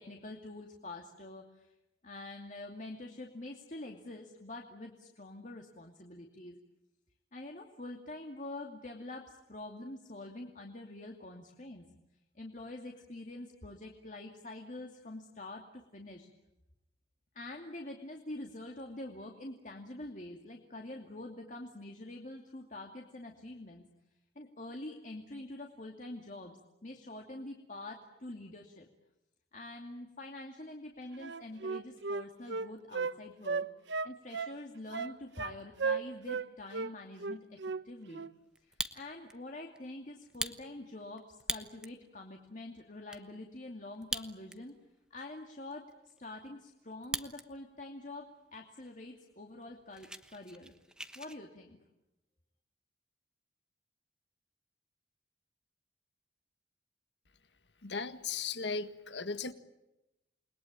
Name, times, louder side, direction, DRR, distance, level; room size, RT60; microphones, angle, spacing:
voice 1, 0.0-1.7 2.0-6.6 7.3-11.9 12.3-16.3 17.3-23.9 24.3-26.6 26.8-28.9 29.5-33.7 34.0-37.6 37.8-38.2 38.6-44.7 45.1-50.7 51.1-51.8, left 2 dB, 45° left, 2 dB, 2.5 m, -46 dB
Wind instrument woodwind instrument, 31.2-33.1 33.5-34.6 34.9-35.5 35.8-36.5 36.7-36.9 37.2-37.8 38.1-38.3, right 4 dB, 85° right, 0.9 m, -35 dB
Fire, 38.6-39.4 39.8-39.9 40.3-42.0 42.5-42.6 42.8-43.2 43.9-44.8 45.1-45.2 45.7-47.5 47.8-48.2 48.8-48.9 49.2-49.3 49.6-51.4, right 1 dB, 5° right, 1.2 m, -41 dB
voice 2, 57.8-59.5, left 5 dB, 80° left, 10 dB, 1.8 m, -37 dB
29.0 x 21.5 x 8.9 m, 0.94 s
head